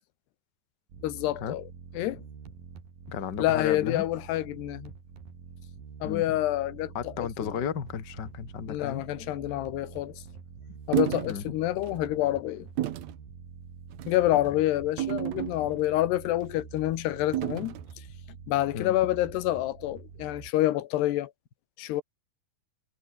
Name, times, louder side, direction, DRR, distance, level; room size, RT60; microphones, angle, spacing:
sound 1, 0.9-20.5, right 6 dB, 55° right, 5.6 m, -46 dB
voice 1, 1.0-1.7 1.9-2.2 3.4-4.9 6.0-7.5 8.7-10.2 10.9-12.7 14.1-17.8 18.5-21.3 21.8-22.0, left 15 dB, 80° left, 3.2 m, -28 dB
voice 2, 3.1-4.0 6.0-6.2 6.9-9.0 11.2-11.5 18.7-18.9, left 8 dB, 50° left, 1.3 m, -34 dB
sound 2, 10.9-11.4 11.8-12.0 12.8-13.1 13.9-14.2 15.0-15.9 17.3-17.8, right 13 dB, 80° right, 1.6 m, -31 dB
omnidirectional pair, 4.8 m